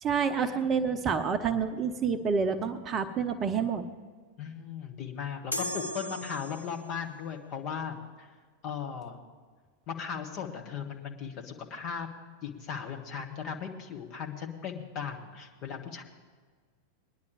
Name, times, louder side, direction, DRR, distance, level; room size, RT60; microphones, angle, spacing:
voice 1, 0.0-3.8, right 6 dB, 25° right, 8 dB, 0.8 m, -28 dB
voice 2, 4.4-8.3 8.6-9.2 9.9-12.1 12.4-16.0, left 7 dB, 40° left, 2 dB, 1.7 m, -37 dB
sound 1, 5.5-7.0, left 1 dB, 80° left, 0.7 m, -36 dB
21.5 x 10.5 x 3.4 m, 1.5 s
figure-of-eight pair, 90°, 0 cm